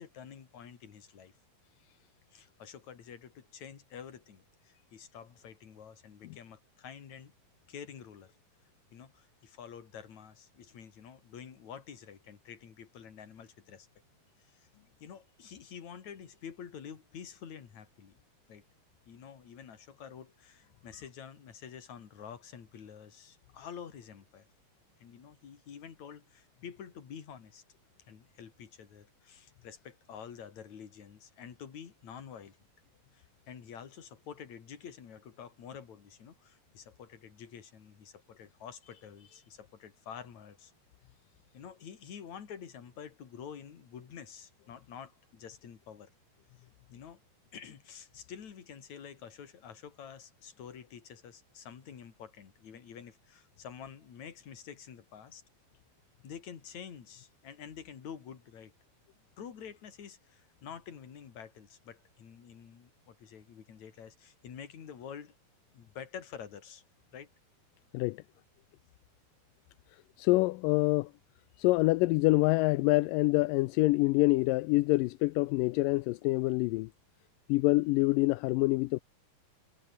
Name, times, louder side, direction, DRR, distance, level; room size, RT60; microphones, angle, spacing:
voice 1, 0.0-1.3 2.3-7.3 7.7-8.4 8.9-13.9 14.5-14.7 15.0-18.2 18.5-18.6 19.1-24.5 25.0-27.6 28.1-32.6 33.1-40.7 41.5-46.1 46.9-47.2 47.5-55.4 56.2-58.7 59.4-65.3 65.7-66.8 67.1-67.3, left 7 dB, 50° left, 3.8 m, -48 dB
voice 2, 70.2-71.1 71.6-76.9 77.5-79.0, left 21 dB, 80° left, 2.0 m, -26 dB
omnidirectional pair, 4.3 m